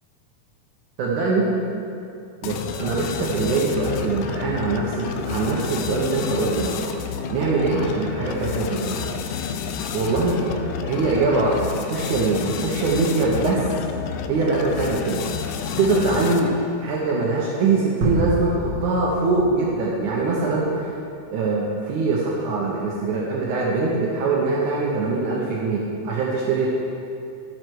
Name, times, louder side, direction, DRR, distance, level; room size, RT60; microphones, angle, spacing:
voice 1, 1.0-1.5 2.4-6.9 7.3-9.0 9.9-13.6 14.3-15.2 15.8-16.5 16.8-21.0 21.3-26.7, right 3 dB, 70° right, -4 dB, 2.4 m, -23 dB
sound 1, 2.4-16.6, left 7 dB, 80° left, 1.7 m, -30 dB
sound 2, 18.0-20.4, right 2 dB, 55° right, 2.3 m, -27 dB
14.0 x 6.5 x 4.6 m, 2.6 s
omnidirectional pair, 3.8 m